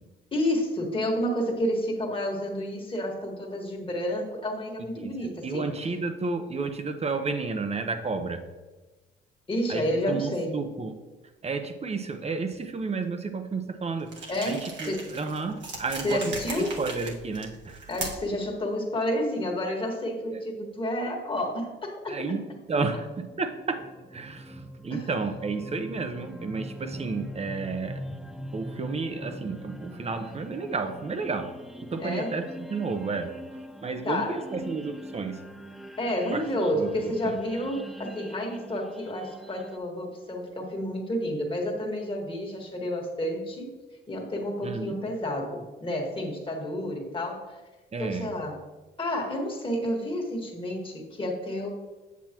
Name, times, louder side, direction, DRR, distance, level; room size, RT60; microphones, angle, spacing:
voice 1, 0.3-5.7 9.5-10.6 14.3-15.1 16.0-16.8 17.9-22.4 24.9-25.1 32.0-32.3 34.1-34.4 36.0-43.7 44.1-47.6 48.0-48.6 49.0-51.7, left 1 dB, 25° left, 0 dB, 1.8 m, -30 dB
voice 2, 5.4-8.4 9.7-11.0 11.4-17.9 20.3-20.4 22.1-22.4 22.7-23.8 24.1-28.0 28.5-31.5 31.9-33.3 33.8-35.4 36.3-37.4 44.6-45.0 47.9-48.3, right 4 dB, 30° right, 8 dB, 0.9 m, -32 dB
sound 1, 14.1-18.4, right 3 dB, 65° right, 1.6 m, -38 dB
sound 2, 23.0-39.8, equal, ahead, 0.5 m, -42 dB
8.3 x 7.1 x 3.0 m, 1.2 s
cardioid pair, 90°, 20 cm